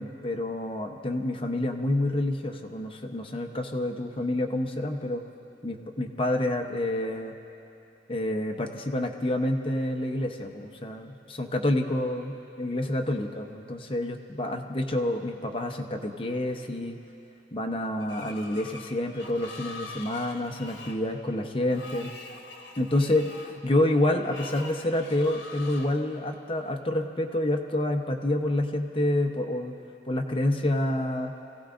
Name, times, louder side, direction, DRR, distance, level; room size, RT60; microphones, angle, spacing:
voice 1, 0.0-5.2 5.6-7.3 8.1-17.0 17.5-22.1 22.8-29.7 30.1-31.3, left 1 dB, 30° left, 3 dB, 0.8 m, -28 dB
Screech, 18.0-26.0, left 3 dB, 70° left, 1.3 m, -44 dB
26.0 x 16.5 x 2.6 m, 2.8 s
head